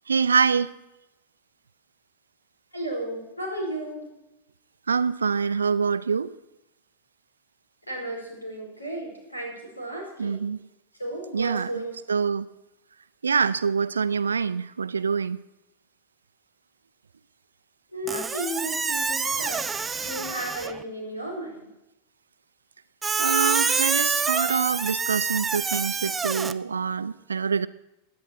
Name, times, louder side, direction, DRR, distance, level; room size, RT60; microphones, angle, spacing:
voice 1, 0.1-0.7 4.9-6.3 10.2-10.6 11.3-12.5 13.2-15.4 23.2-27.7, right 6 dB, 75° right, 16 dB, 0.5 m, -25 dB
voice 2, 2.7-4.1 7.9-10.4 11.0-11.9 17.9-19.6 20.0-21.6, right 1 dB, 85° left, -1 dB, 4.5 m, -34 dB
Squeak, 18.1-20.8 23.0-26.5, right 5 dB, 15° right, 0.5 m, -27 dB
16.0 x 10.5 x 4.4 m, 0.90 s
figure-of-eight pair, 90°, 0 cm